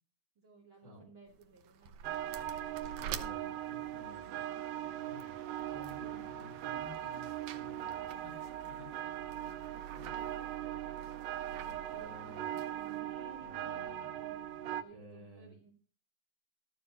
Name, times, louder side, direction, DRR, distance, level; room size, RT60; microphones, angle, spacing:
voice 1, 0.4-2.0 4.3-4.7 9.0-10.4 12.6-15.7, right 4 dB, 35° right, -2 dB, 3.0 m, -58 dB
sound 1, 1.3-13.0, right 8 dB, 75° right, 1.7 m, -50 dB
sound 2, 2.0-14.8, right 11 dB, 90° right, 2.7 m, -40 dB
voice 2, 2.9-4.4 5.7-8.3 11.5-12.6 13.4-14.2 14.5-15.5, equal, 10° left, -1 dB, 2.5 m, -53 dB
sound 3, 5.0-5.9 6.3-6.6 6.9-7.4 8.1-9.0 9.9-10.3, left 6 dB, 60° left, 2.6 m, -57 dB
13.0 x 12.0 x 2.8 m, 0.36 s
omnidirectional pair, 4.3 m